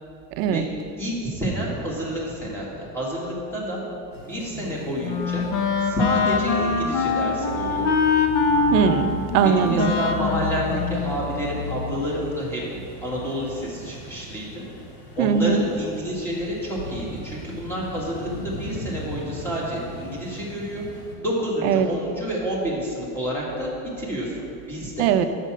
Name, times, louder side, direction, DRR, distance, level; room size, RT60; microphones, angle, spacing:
voice 1, 1.0-3.8 4.2-5.4 5.8-8.0 9.4-12.6 13.0-14.6 15.2-20.8 21.2-25.1, equal, 5° left, -5 dB, 1.5 m, -29 dB
sound 1, 4.1-21.2, left 3 dB, 65° left, 1.7 m, -37 dB
Wind instrument woodwind instrument, 4.5-11.7, left 5 dB, 45° left, 0.7 m, -24 dB
voice 2, 8.7-10.0 15.2-15.6 21.6-21.9 25.0-25.2, right 8 dB, 70° right, 8 dB, 0.6 m, -20 dB
6.5 x 6.0 x 7.4 m, 2.5 s
cardioid pair, 175°, 41 cm